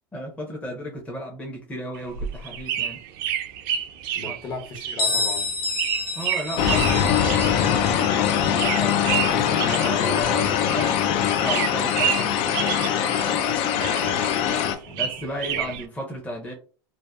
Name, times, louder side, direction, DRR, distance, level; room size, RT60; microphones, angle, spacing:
voice 1, 0.1-3.0 4.3-4.4 6.1-13.4 15.0-16.5, equal, 10° left, 0.7 m, -34 dB
sound 1, 1.9-11.0 11.3-13.5 13.8-15.8, right 9 dB, 65° right, 0.4 m, -30 dB
voice 2, 4.1-5.5 11.0-11.3 13.8-15.1 15.5-15.8, left 2 dB, 40° left, 1.0 m, -37 dB
Bell, 5.0-10.5, left 3 dB, 85° left, 0.9 m, -30 dB
sound 2, 6.6-14.8, left 9 dB, 55° left, 0.4 m, -22 dB
2.7 x 2.1 x 2.3 m
supercardioid pair, 115°, 12 cm